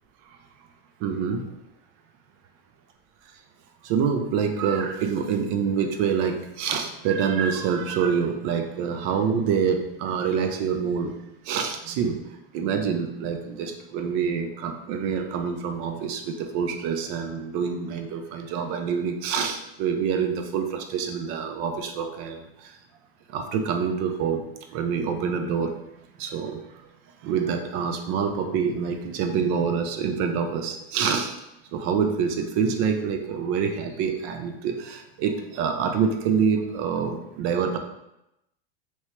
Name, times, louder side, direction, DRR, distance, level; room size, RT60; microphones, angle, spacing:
voice 1, 1.0-1.4 3.8-11.2 11.5-12.2 12.5-22.4 23.3-24.4 24.7-25.7 26.2-26.6 27.2-31.3 31.7-37.8, right 6 dB, 50° right, 6 dB, 0.6 m, -26 dB
3.0 x 2.8 x 3.2 m, 0.86 s
supercardioid pair, 120°, 30 cm